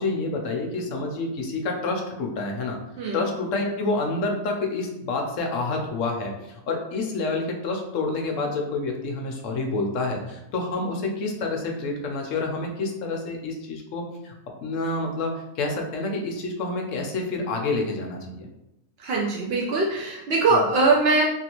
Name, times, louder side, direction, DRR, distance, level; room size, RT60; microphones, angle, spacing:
voice 1, 0.0-2.8 3.1-6.3 6.7-14.3 14.6-18.5 20.5-20.6, left 3 dB, 65° left, 2 dB, 0.8 m, -28 dB
voice 2, 19.0-21.2, right 3 dB, 85° right, -3 dB, 0.5 m, -21 dB
2.9 x 2.6 x 2.9 m, 0.86 s
omnidirectional pair, 1.6 m